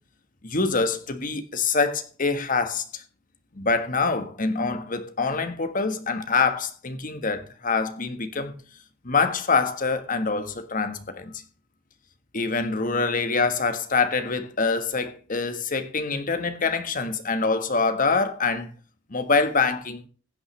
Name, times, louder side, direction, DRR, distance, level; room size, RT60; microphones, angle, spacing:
voice 1, 0.4-3.0 3.5-8.5 9.0-11.3 12.3-18.7 19.1-20.0, left 4 dB, 45° left, 1.4 m, -25 dB
15.5 x 9.0 x 3.3 m
head